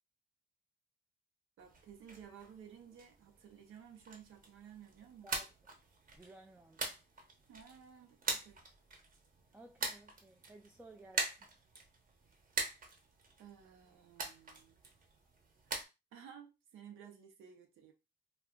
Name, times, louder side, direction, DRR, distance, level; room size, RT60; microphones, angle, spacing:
sound 1, 1.6-15.8, right 3 dB, 45° right, 1.0 m, -44 dB
voice 1, 1.6-5.3 7.5-8.6 13.4-14.8 15.7-17.9, right 8 dB, 85° right, 0.8 m, -55 dB
voice 2, 6.1-6.9 9.5-11.5, right 2 dB, 10° right, 0.3 m, -57 dB
2.4 x 2.2 x 3.6 m
cardioid pair, 90°, 20 cm